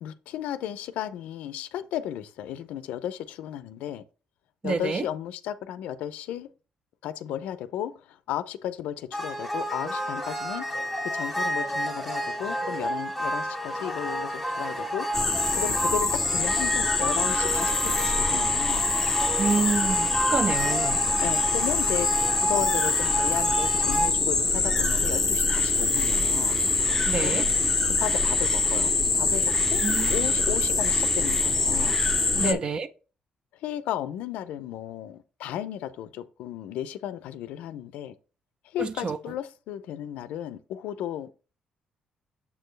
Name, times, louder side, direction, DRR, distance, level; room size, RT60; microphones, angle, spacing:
voice 1, 0.0-4.0 4.6-6.5 7.0-7.9 8.3-10.7 11.1-15.1 15.6-18.8 21.2-26.6 27.2-27.5 28.0-29.8 30.1-32.0 32.3-32.6 33.6-38.1 38.7-41.4, left 11 dB, 90° left, 0.5 m, -34 dB
voice 2, 4.6-5.1 19.4-21.0 27.1-27.5 29.8-30.1 32.4-32.9 38.8-39.2, right 4 dB, 40° right, 0.6 m, -28 dB
sound 1, 9.1-24.1, equal, 5° right, 1.8 m, -30 dB
sound 2, 15.1-32.5, left 3 dB, 15° left, 0.5 m, -24 dB
7.1 x 4.6 x 3.2 m
cardioid pair, 100°, 2 cm